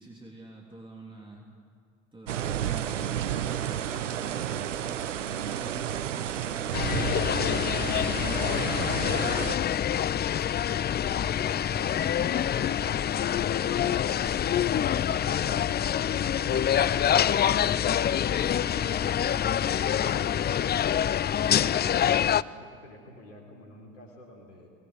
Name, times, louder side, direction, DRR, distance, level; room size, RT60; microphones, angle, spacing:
voice 1, 0.0-1.5 2.1-10.2 11.1-12.8 13.5-14.5 14.9-15.8 17.4-19.6, right 1 dB, 15° right, -1 dB, 3.5 m, -48 dB
sound 1, 2.3-9.6, right 10 dB, 80° right, 0.8 m, -31 dB
sound 2, 6.7-22.4, left 9 dB, 25° left, 0.5 m, -26 dB
voice 2, 21.2-24.7, left 1 dB, 80° left, 1 dB, 3.8 m, -50 dB
23.5 x 20.5 x 9.7 m, 2.2 s
figure-of-eight pair, 60°, 36 cm